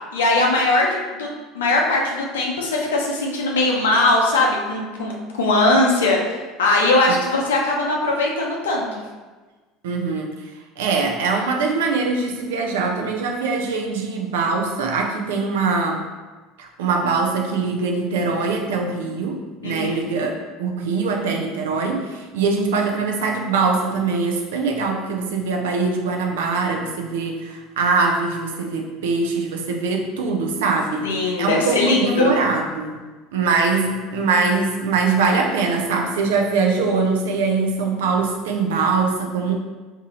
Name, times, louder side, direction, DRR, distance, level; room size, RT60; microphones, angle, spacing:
voice 1, 0.1-1.3 1.5-9.0 19.6-20.2 31.0-32.3, left 2 dB, 80° left, -1 dB, 0.6 m, -20 dB
voice 2, 9.8-10.3 10.8-16.0 16.6-20.3 20.6-33.0 33.3-39.5, right 4 dB, 75° right, 1 dB, 0.5 m, -22 dB
2.7 x 2.6 x 4.0 m, 1.3 s
hypercardioid pair, 70°, 0 cm